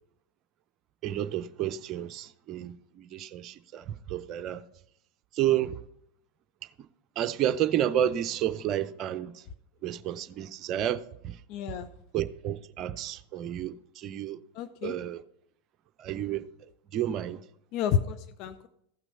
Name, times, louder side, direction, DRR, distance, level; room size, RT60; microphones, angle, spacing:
voice 1, 1.0-4.6 5.3-5.8 7.2-9.4 9.8-11.4 12.1-14.4 14.8-15.2 16.0-16.4 16.9-17.4, right 11 dB, 40° right, 0.6 m, -31 dB
voice 2, 11.5-11.9 14.5-14.9 17.7-18.7, left 8 dB, 50° left, 0.6 m, -30 dB
15.0 x 6.0 x 5.5 m
hypercardioid pair, 85°, 0 cm